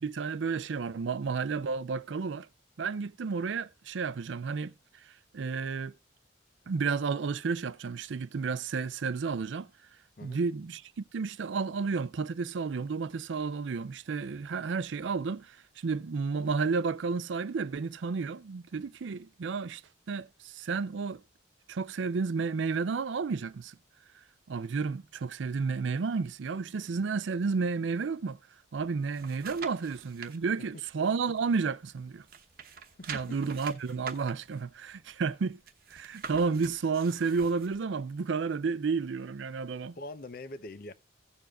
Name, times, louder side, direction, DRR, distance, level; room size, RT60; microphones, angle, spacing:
voice 1, 0.0-2.5 2.8-4.7 5.3-5.9 6.7-9.7 10.2-19.8 20.1-21.2 21.7-23.7 24.5-28.4 28.7-32.2 33.1-35.6 35.9-39.9, right 5 dB, 75° right, 0.4 m, -31 dB
sound 1, 28.8-30.4 30.8-32.0 32.2-37.8 38.2-38.3, right 6 dB, 45° right, 1.0 m, -45 dB
voice 2, 40.0-40.9, left 2 dB, 45° left, 0.6 m, -43 dB
16.5 x 7.0 x 2.4 m
head